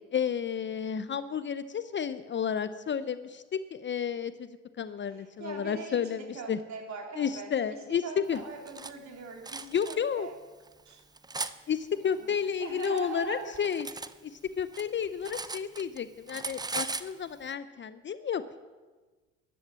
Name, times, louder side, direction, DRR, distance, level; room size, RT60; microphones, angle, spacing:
voice 1, 0.1-4.5 4.8-6.2 6.5-6.6 7.2-8.0 8.3-8.4 9.7-10.3 11.7-13.9 14.2-18.6, left 7 dB, 30° left, 13 dB, 0.7 m, -31 dB
voice 2, 5.0-10.4 10.9-11.0 11.9-13.6, right 5 dB, 50° right, 2 dB, 3.5 m, -42 dB
Cutlery silverware, 8.3-8.9 9.4-10.0 10.7-11.5 12.4-14.1 14.4-16.0 16.3-17.1, right 3 dB, 10° right, 0.7 m, -38 dB
14.0 x 10.5 x 7.6 m, 1.3 s
hypercardioid pair, 70°, 36 cm